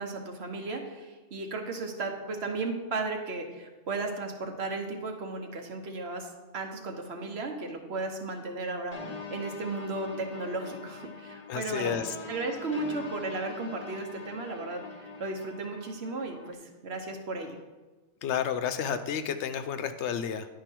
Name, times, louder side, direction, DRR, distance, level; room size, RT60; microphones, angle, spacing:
voice 1, 0.0-12.0 12.3-17.6, right 3 dB, 65° right, 4 dB, 1.2 m, -35 dB
sound 1, 8.9-16.5, left 3 dB, 40° left, 0.8 m, -43 dB
voice 2, 11.5-12.1 18.2-20.5, left 8 dB, 80° left, 10 dB, 0.9 m, -31 dB
10.5 x 4.7 x 4.5 m, 1.2 s
omnidirectional pair, 1.2 m